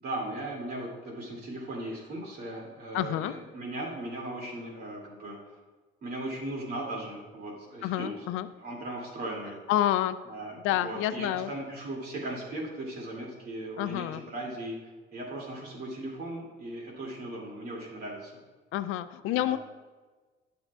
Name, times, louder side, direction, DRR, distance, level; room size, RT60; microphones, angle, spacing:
voice 1, 0.0-5.6 6.0-8.2 8.6-9.6 10.3-14.8 15.1-18.3 19.2-19.6, right 1 dB, 50° right, -2 dB, 2.3 m, -38 dB
voice 2, 2.9-3.3 7.8-8.5 9.7-10.2 10.6-11.5 13.8-14.2 18.7-19.6, left 13 dB, 75° left, 13 dB, 0.4 m, -28 dB
11.5 x 7.0 x 2.3 m, 1.3 s
cardioid pair, 155°, 21 cm